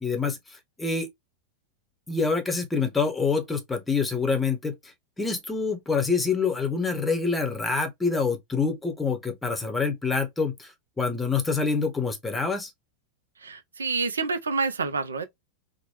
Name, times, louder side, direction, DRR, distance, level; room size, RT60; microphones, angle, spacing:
voice 1, 0.0-1.1 2.1-4.7 5.2-12.7, left 4 dB, 10° left, 0.8 m, -26 dB
voice 2, 13.4-15.2, right 4 dB, 70° right, 0.5 m, -28 dB
3.0 x 2.1 x 2.8 m
figure-of-eight pair, 90°, 0 cm